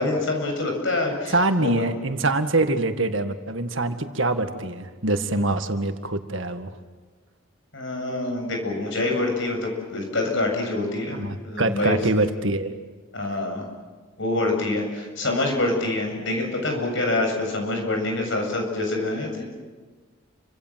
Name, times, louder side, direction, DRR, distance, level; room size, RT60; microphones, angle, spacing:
voice 1, 0.0-1.8 7.7-12.0 13.1-13.6 14.2-19.4, left 2 dB, 60° left, 2 dB, 7.7 m, -26 dB
voice 2, 1.3-6.7 11.1-12.7, right 2 dB, 65° right, 7 dB, 2.0 m, -24 dB
30.0 x 26.0 x 7.7 m, 1.4 s
head